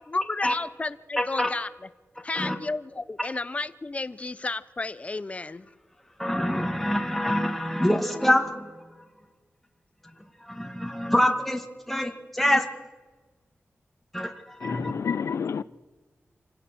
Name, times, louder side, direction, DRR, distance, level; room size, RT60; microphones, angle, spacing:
voice 1, 0.0-1.7 2.2-5.7, left 3 dB, 30° left, 15 dB, 0.7 m, -32 dB
voice 2, 6.2-8.7 10.5-12.7 14.1-14.3 14.6-14.9, left 1 dB, 5° left, 3 dB, 1.7 m, -25 dB
voice 3, 14.6-15.6, left 6 dB, 75° left, 17 dB, 0.6 m, -29 dB
27.0 x 17.0 x 6.2 m, 1.3 s
wide cardioid pair, 135°, 5 cm